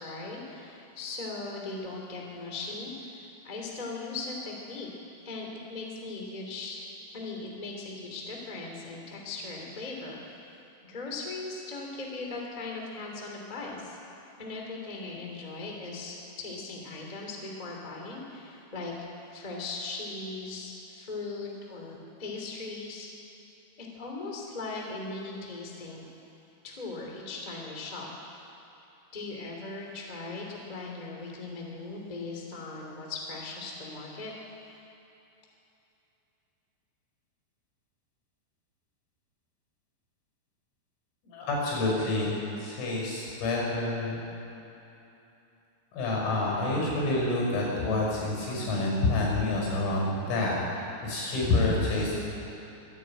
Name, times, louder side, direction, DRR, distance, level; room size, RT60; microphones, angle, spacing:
voice 1, 0.0-2.9 3.4-4.9 5.2-6.8 7.1-10.2 10.9-14.0 14.4-18.9 19.3-23.1 23.8-26.1 26.6-28.1 29.1-34.4, left 3 dB, 15° left, -1 dB, 1.8 m, -38 dB
voice 2, 41.2-44.2 45.9-52.1, left 2 dB, 85° left, -3 dB, 8.5 m, -28 dB
24.5 x 12.0 x 9.1 m, 2.9 s
omnidirectional pair, 5.9 m